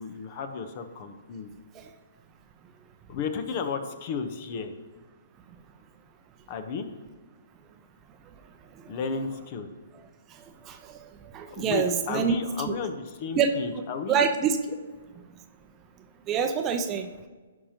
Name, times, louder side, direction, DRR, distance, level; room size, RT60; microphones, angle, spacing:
voice 1, 0.0-1.5 3.1-4.7 6.5-6.9 8.9-9.7 11.5-14.2, left 5 dB, 40° left, 9 dB, 0.9 m, -33 dB
voice 2, 11.3-12.4 12.7-12.8 13.3-13.8 14.1-14.6 16.3-17.1, right 6 dB, 25° right, 6 dB, 0.7 m, -25 dB
16.0 x 5.7 x 2.9 m, 1.4 s
figure-of-eight pair, 125°, 0 cm